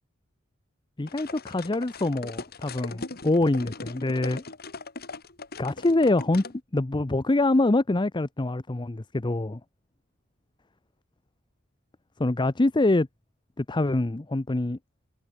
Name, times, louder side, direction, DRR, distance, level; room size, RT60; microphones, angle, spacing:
voice 1, 1.0-4.4 5.6-6.4 6.7-9.6 12.2-13.1 13.6-14.8, left 2 dB, 20° left, 0.7 m, -25 dB
sound 1, 1.1-6.5, left 3 dB, 50° left, 3.8 m, -39 dB
head